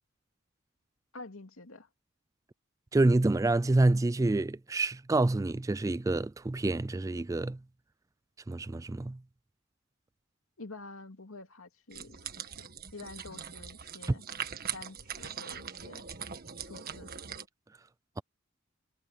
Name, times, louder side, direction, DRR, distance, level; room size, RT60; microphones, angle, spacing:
voice 1, 1.1-1.9 10.6-12.7 12.9-14.2 14.7-16.1 16.6-17.1, left 3 dB, 85° left, 2.5 m, -48 dB
voice 2, 2.9-7.6 8.5-9.2, right 2 dB, 15° right, 0.3 m, -27 dB
sound 1, 11.9-17.4, right 8 dB, 45° right, 1.6 m, -41 dB
head